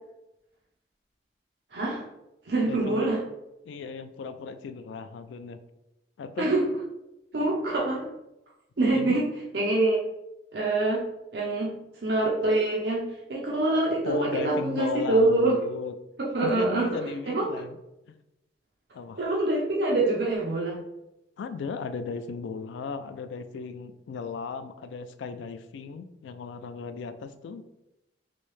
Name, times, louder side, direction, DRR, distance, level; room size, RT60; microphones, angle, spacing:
voice 1, 1.7-2.1 2.4-3.2 6.4-6.8 7.3-8.1 8.8-9.3 9.5-10.0 10.5-15.6 16.2-17.5 19.2-20.8, right 2 dB, 65° right, -3 dB, 0.5 m, -25 dB
voice 2, 2.6-3.1 3.7-5.6 6.2-6.5 8.9-9.2 14.0-15.9 16.4-17.8 18.1-18.2 18.9-19.2 21.4-27.6, left 5 dB, 80° left, 10 dB, 0.3 m, -36 dB
3.1 x 2.7 x 3.2 m, 0.92 s
head